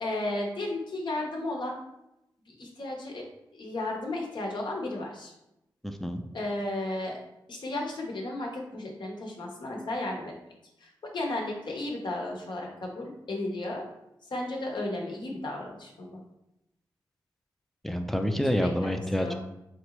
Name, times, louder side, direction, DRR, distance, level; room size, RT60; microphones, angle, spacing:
voice 1, 0.0-1.8 2.5-3.3 3.5-5.3 6.3-7.2 7.5-10.3 10.8-13.8 14.3-16.2 18.5-19.3, left 2 dB, 65° left, 0 dB, 1.0 m, -34 dB
voice 2, 5.8-6.2 17.8-19.3, equal, 5° left, 6 dB, 0.5 m, -28 dB
3.8 x 3.3 x 3.0 m, 0.87 s
cardioid pair, 55°, 8 cm